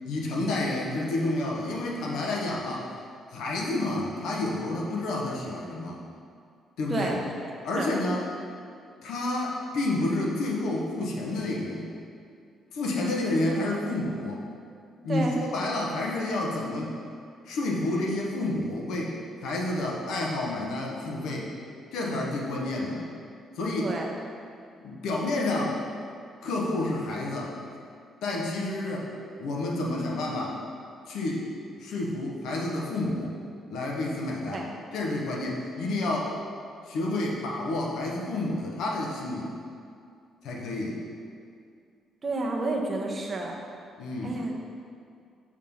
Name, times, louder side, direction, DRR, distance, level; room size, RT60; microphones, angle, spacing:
voice 1, 0.0-2.9 3.3-6.0 6.8-7.1 7.6-8.3 9.0-11.9 12.7-14.4 15.0-17.0 17.5-21.5 21.9-23.0 23.6-23.9 24.8-25.8 26.4-27.5 28.2-29.1 29.4-30.6 31.1-31.5 31.8-33.4 33.7-34.7 34.9-36.3 36.9-39.5 40.4-41.0 44.0-44.4, left 2 dB, 80° left, -2 dB, 1.0 m, -29 dB
voice 2, 6.9-7.2 7.7-7.9 15.1-15.4 23.8-24.1 34.5-34.7 42.2-43.5 44.2-44.5, right 2 dB, 35° right, 0 dB, 1.0 m, -30 dB
6.5 x 3.7 x 5.5 m, 2.3 s
cardioid pair, 90°, 0 cm